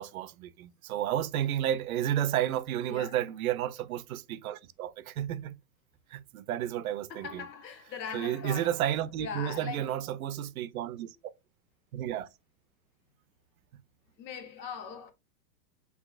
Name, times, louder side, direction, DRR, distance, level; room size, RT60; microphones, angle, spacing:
voice 1, 0.0-5.6 6.1-7.4 8.1-11.2 11.9-12.3, right 11 dB, 60° right, 0.6 m, -32 dB
voice 2, 2.9-3.2 7.1-8.9 9.2-9.9 14.2-15.1, left 7 dB, 85° left, 1.4 m, -40 dB
6.0 x 2.8 x 2.4 m
hypercardioid pair, 145°, 50 cm